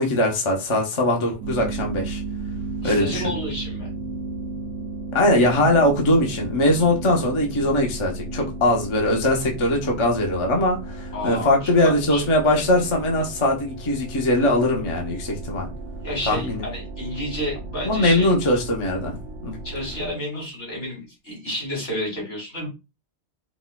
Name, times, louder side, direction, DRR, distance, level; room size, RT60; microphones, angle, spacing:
voice 1, 0.0-2.2 2.8-3.2 5.1-15.7 16.3-16.7 17.8-19.2 19.4-19.6, left 1 dB, 30° left, 0.6 m, -21 dB
sound 1, 1.4-20.1, right 3 dB, 80° right, 1.0 m, -34 dB
voice 2, 2.8-3.9 11.1-12.3 16.0-18.3 19.6-22.7, equal, 85° left, 2.1 m, -30 dB
4.1 x 2.1 x 2.2 m
omnidirectional pair, 1.2 m